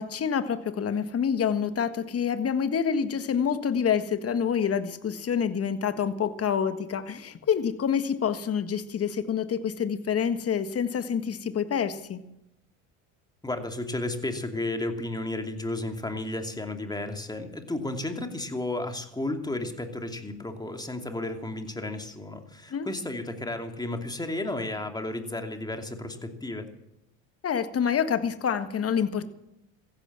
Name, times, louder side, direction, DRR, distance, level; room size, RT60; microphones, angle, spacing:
voice 1, 0.0-12.2 22.7-22.9 27.4-29.3, left 7 dB, 35° left, 10 dB, 1.7 m, -27 dB
voice 2, 13.4-26.7, left 2 dB, 10° left, 5 dB, 2.7 m, -33 dB
15.5 x 11.5 x 7.5 m, 0.86 s
hypercardioid pair, 80°, 40 cm